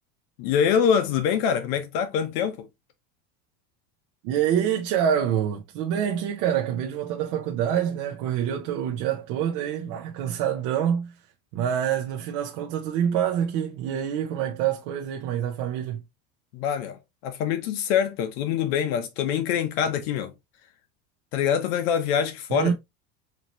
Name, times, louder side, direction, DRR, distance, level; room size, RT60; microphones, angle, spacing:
voice 1, 0.4-2.7 16.5-20.3 21.3-22.7, left 8 dB, 65° left, 0.8 m, -25 dB
voice 2, 4.2-11.1 11.5-16.0 22.5-22.7, right 9 dB, 50° right, 0.7 m, -26 dB
4.2 x 2.8 x 2.9 m
cardioid pair, 160°, 33 cm